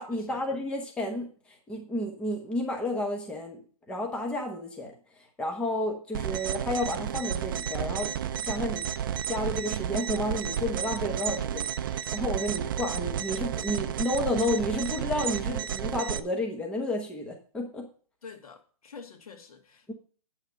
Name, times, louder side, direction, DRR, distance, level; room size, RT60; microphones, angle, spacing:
voice 1, 0.0-8.9 9.3-17.9 19.9-20.0, left 1 dB, 5° left, 1.0 m, -31 dB
sound 1, 6.1-16.2, right 9 dB, 35° right, 0.5 m, -32 dB
voice 2, 18.2-19.9, left 5 dB, 75° left, 2.3 m, -47 dB
9.1 x 5.8 x 6.9 m
hypercardioid pair, 160°, 19 cm